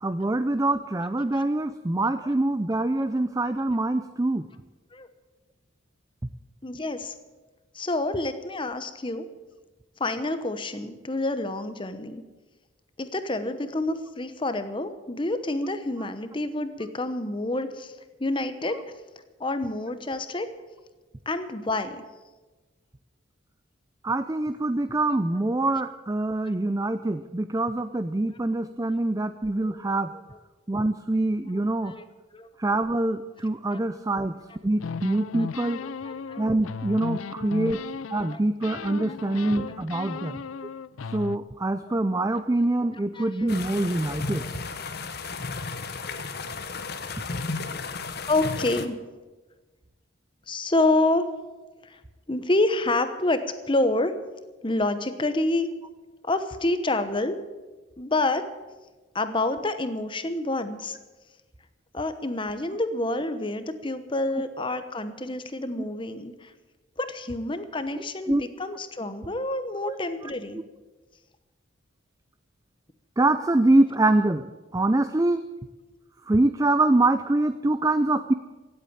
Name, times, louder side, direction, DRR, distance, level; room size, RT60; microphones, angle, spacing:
voice 1, 0.0-4.5 24.0-30.2 30.7-32.0 32.6-34.4 34.6-35.8 36.4-37.8 38.1-40.4 41.1-44.4 67.9-68.4 69.9-70.0 70.2-70.6 73.2-74.4 74.7-75.4 76.3-78.3, right 2 dB, 15° right, 11 dB, 0.4 m, -24 dB
voice 2, 6.6-7.1 7.7-9.3 10.0-12.2 13.0-17.9 18.2-18.8 19.4-20.5 21.3-22.0 29.6-29.8 31.8-32.0 32.3-32.5 33.7-33.8 35.4-35.5 35.8-36.4 37.6-37.8 38.3-38.4 40.1-40.3 43.1-43.5 48.3-49.0 50.5-51.3 51.9-52.0 52.3-53.4 53.7-54.1 54.6-55.7 56.3-57.4 58.0-58.4 59.1-61.0 61.9-66.5 67.0-70.6, left 2 dB, 25° left, 10 dB, 1.0 m, -28 dB
sound 1, 34.8-38.3 38.6-41.4, left 5 dB, 90° left, 0.5 m, -36 dB
sound 2, 43.5-48.9, left 4 dB, 50° left, 1.1 m, -34 dB
17.0 x 8.4 x 9.0 m, 1.2 s
head